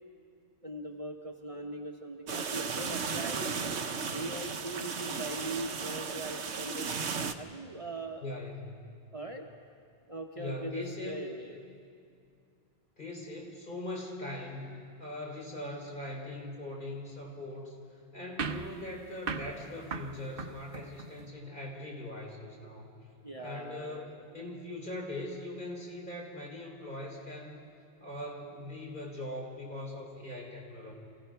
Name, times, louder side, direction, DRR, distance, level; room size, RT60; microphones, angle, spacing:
voice 1, 0.6-3.6 4.1-6.9 7.4-8.2 9.1-9.4 10.1-11.6 23.2-24.2, right 2 dB, 30° right, 2 dB, 1.1 m, -40 dB
sound 1, 2.3-7.3, right 5 dB, 75° right, 1.2 m, -35 dB
voice 2, 8.2-8.9 10.4-11.3 13.0-17.8 18.1-22.9 23.4-27.7 28.0-30.9, left 1 dB, 45° left, -2 dB, 3.8 m, -41 dB
sound 2, 18.4-21.3, right 5 dB, 55° right, 1.0 m, -39 dB
27.5 x 16.5 x 5.8 m, 2.4 s
omnidirectional pair, 1.2 m